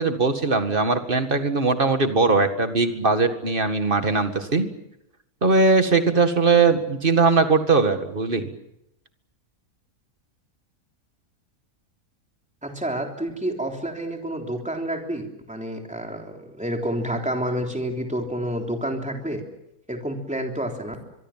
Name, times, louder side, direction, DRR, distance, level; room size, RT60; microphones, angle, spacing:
voice 1, 0.0-4.7 5.4-8.5, right 4 dB, 35° right, 7 dB, 2.1 m, -20 dB
voice 2, 12.6-19.4 19.9-21.0, right 1 dB, 5° right, 2 dB, 3.5 m, -29 dB
24.5 x 23.5 x 7.4 m, 0.82 s
omnidirectional pair, 1.6 m